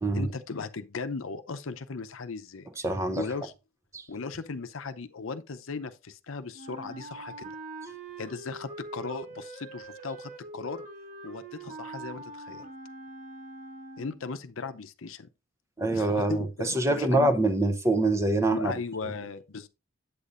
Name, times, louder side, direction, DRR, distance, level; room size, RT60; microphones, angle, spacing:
voice 1, 0.1-2.7 3.2-3.5 4.1-7.5 8.2-10.9 11.2-12.7 14.0-15.3 15.9-17.4 18.5-19.7, left 4 dB, 80° left, 0.7 m, -37 dB
voice 2, 2.8-3.2 3.9-4.1 15.8-18.7, right 2 dB, 15° right, 0.7 m, -25 dB
Wind instrument woodwind instrument, 6.5-14.2, right 2 dB, 35° right, 1.4 m, -43 dB
8.4 x 8.2 x 2.5 m
head